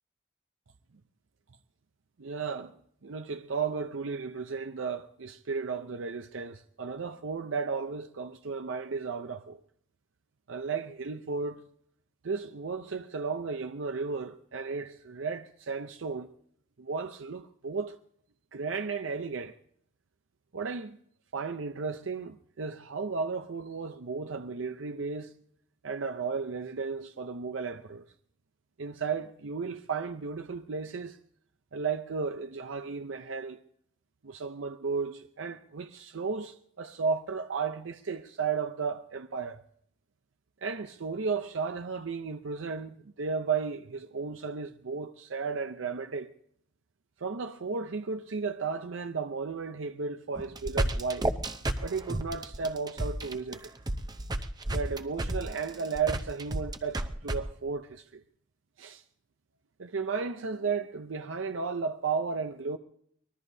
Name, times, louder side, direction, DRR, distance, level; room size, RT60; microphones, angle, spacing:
voice 1, 2.2-2.7 3.0-9.6 10.5-11.7 12.2-16.3 16.8-18.0 18.5-19.6 20.5-21.0 21.3-25.3 25.8-28.1 28.8-31.2 31.7-33.6 34.2-39.6 40.6-46.3 47.2-51.3 51.8-53.7 54.7-58.2 58.8-59.0 59.8-62.8, right 5 dB, 85° right, 0.6 m, -34 dB
sound 1, 50.4-57.4, right 1 dB, 20° right, 0.7 m, -31 dB
24.5 x 20.0 x 2.7 m
head